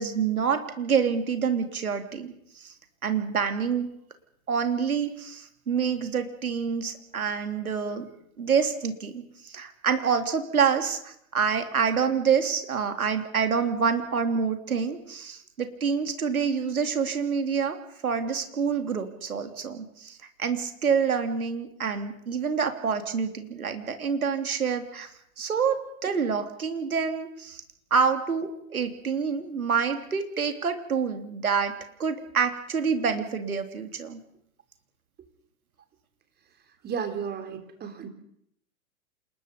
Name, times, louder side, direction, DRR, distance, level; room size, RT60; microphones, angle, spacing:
voice 1, 0.0-2.7 3.0-3.9 4.5-8.1 8.4-17.8 18.0-25.1 25.4-27.6 27.9-34.2, right 6 dB, 80° right, 6 dB, 3.4 m, -27 dB
voice 2, 36.8-38.1, right 7 dB, 25° right, 5 dB, 3.8 m, -33 dB
27.5 x 20.5 x 5.4 m, 0.73 s
figure-of-eight pair, 105°, 43 cm